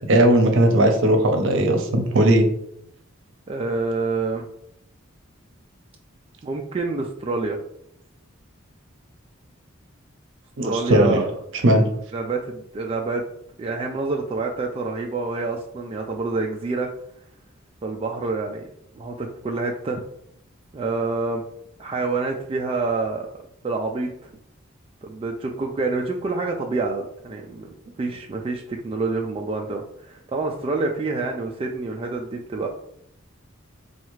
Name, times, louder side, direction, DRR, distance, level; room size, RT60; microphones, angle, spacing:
voice 1, 0.1-2.4 10.6-11.2 11.6-11.8, right 1 dB, 65° right, 4 dB, 0.7 m, -17 dB
voice 2, 3.5-4.4 6.4-7.6 10.6-11.3 12.1-13.2 13.6-16.9 17.8-18.7 18.9-20.0 20.7-21.4 21.8-23.3 23.6-24.1 25.0-27.7 28.0-32.7, right 3 dB, 25° right, 1 dB, 0.3 m, -27 dB
4.2 x 2.3 x 3.1 m, 0.72 s
head